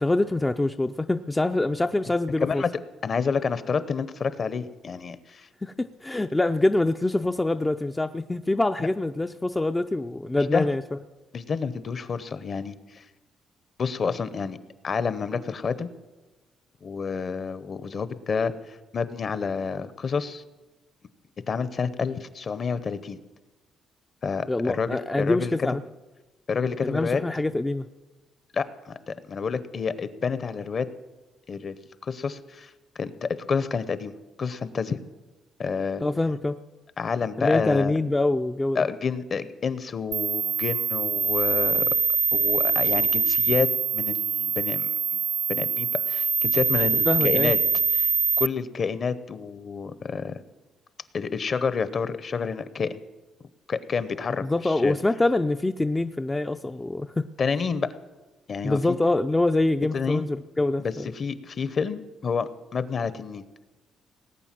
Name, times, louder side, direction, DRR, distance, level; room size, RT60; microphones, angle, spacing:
voice 1, 0.0-2.6 5.6-10.8 24.5-25.8 26.8-27.9 36.0-36.6 37.4-38.9 47.1-47.5 54.4-57.3 58.6-61.1, left 2 dB, 15° left, 7 dB, 0.4 m, -25 dB
voice 2, 2.4-2.7 3.0-5.5 10.5-10.7 11.3-13.0 13.8-14.6 14.8-15.9 16.8-20.4 21.5-23.2 24.2-25.5 26.5-27.2 28.5-30.9 31.5-32.7 33.0-35.0 35.6-36.0 37.0-37.9 38.7-41.9 42.3-44.9 45.5-47.6 48.0-48.1 48.4-50.4 51.1-53.0 53.7-54.9 57.4-57.9 58.5-59.0 59.9-60.2 60.8-63.4, left 5 dB, 40° left, 14 dB, 0.9 m, -29 dB
sound 1, 40.1-48.5, right 6 dB, 40° right, 0.5 m, -24 dB
18.5 x 9.1 x 7.5 m, 1.1 s
cardioid pair, 125°, 0 cm